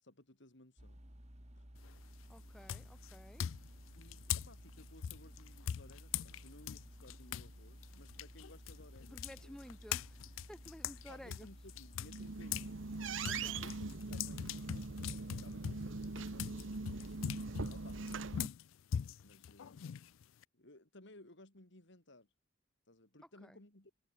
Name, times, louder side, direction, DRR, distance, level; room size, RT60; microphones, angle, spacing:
voice 1, 0.0-1.0 1.5-1.7 4.0-9.6 11.1-12.8 13.2-14.7 15.2-16.8 17.7-18.3 19.2-20.1 20.5-22.3 22.9-23.9, left 1 dB, 65° left, 4.4 m, -59 dB
sound 1, 0.8-18.0, equal, 35° right, 4.6 m, -55 dB
sound 2, 1.8-2.1 2.7-7.5 7.8-12.7 13.0-20.4, left 9 dB, 85° left, 0.4 m, -42 dB
voice 2, 2.3-3.5 9.1-10.2 10.5-11.5 13.2-13.7 23.4-23.6, equal, 5° left, 6.7 m, -54 dB
sound 3, 12.0-18.5, right 3 dB, 75° right, 1.1 m, -42 dB
head